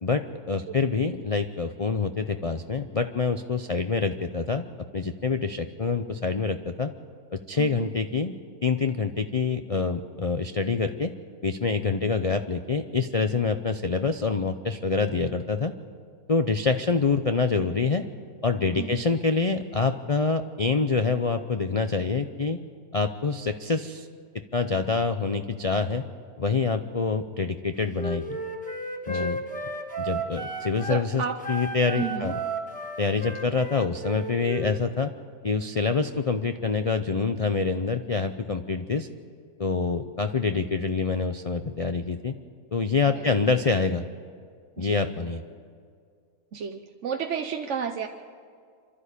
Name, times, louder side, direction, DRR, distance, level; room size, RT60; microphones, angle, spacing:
voice 1, 0.0-4.7 4.9-6.9 7.3-8.4 8.6-11.1 11.4-15.7 16.3-18.0 18.4-22.6 22.9-24.1 24.5-26.0 26.4-28.4 29.1-29.4 30.0-31.2 31.5-32.3 33.0-35.1 35.4-39.1 39.6-42.3 42.7-44.1 44.8-45.4, left 4 dB, 65° left, 8 dB, 0.3 m, -26 dB
voice 2, 7.6-7.9 18.8-19.0 29.1-29.4 30.9-31.4 31.9-32.3 43.1-43.5 44.8-45.2 46.5-48.1, right 7 dB, 55° right, 4 dB, 1.1 m, -32 dB
Wind instrument woodwind instrument, 27.9-31.0 31.4-34.8, right 2 dB, 5° left, 1.5 m, -34 dB
27.0 x 12.5 x 8.3 m, 2.1 s
omnidirectional pair, 1.6 m